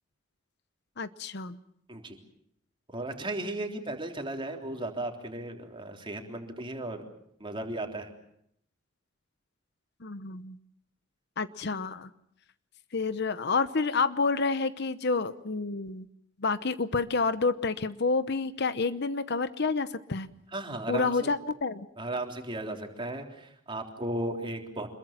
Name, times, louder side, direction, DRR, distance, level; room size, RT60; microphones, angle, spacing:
voice 1, 1.0-1.6 10.0-10.6 11.4-12.1 12.9-16.1 16.4-20.3 20.9-21.9, left 4 dB, 55° left, 13 dB, 0.9 m, -29 dB
voice 2, 2.9-7.0 7.4-8.1 20.5-21.3 22.0-24.9, right 1 dB, 25° right, 3 dB, 3.5 m, -35 dB
26.5 x 22.0 x 7.4 m, 0.72 s
head